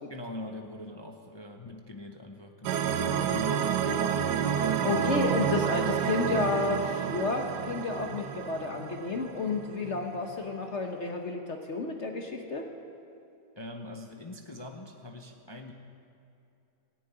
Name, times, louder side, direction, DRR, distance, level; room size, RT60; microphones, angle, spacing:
voice 1, 0.1-3.0 4.9-5.1 13.6-15.7, left 1 dB, 25° left, 3 dB, 0.5 m, -43 dB
sound 1, 2.6-9.7, right 8 dB, 80° right, 1.3 m, -29 dB
voice 2, 3.1-3.5 3.9-4.0 4.8-12.7, left 3 dB, 45° left, 3 dB, 1.2 m, -31 dB
sound 2, 5.2-10.3, right 5 dB, 45° right, 1.4 m, -50 dB
17.5 x 7.7 x 9.3 m, 2.7 s
omnidirectional pair, 1.8 m